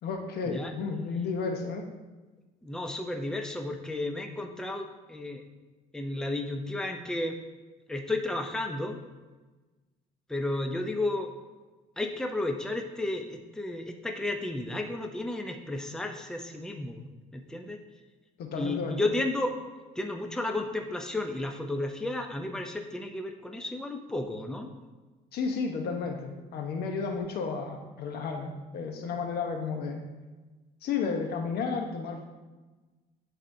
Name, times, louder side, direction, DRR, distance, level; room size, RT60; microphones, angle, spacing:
voice 1, 0.0-1.9 18.4-19.1 25.3-30.0 30.8-32.3, left 5 dB, 70° left, 3 dB, 1.0 m, -32 dB
voice 2, 2.6-5.4 5.9-7.3 7.9-9.0 10.3-11.3 12.0-17.8 18.5-19.5 20.0-24.7, left 2 dB, 5° left, 3 dB, 0.6 m, -33 dB
11.0 x 4.1 x 2.7 m, 1.2 s
cardioid pair, 110°, 17 cm